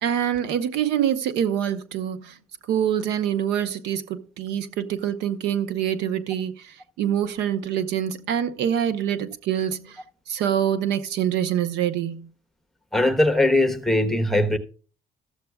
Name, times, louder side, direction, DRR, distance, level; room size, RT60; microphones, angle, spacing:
voice 1, 0.0-2.4 2.7-10.0 10.3-12.3, right 9 dB, 85° right, 0.9 m, -25 dB
voice 2, 12.9-14.6, left 1 dB, ahead, 1.1 m, -20 dB
14.0 x 7.9 x 2.3 m
cardioid pair, 110°, 17 cm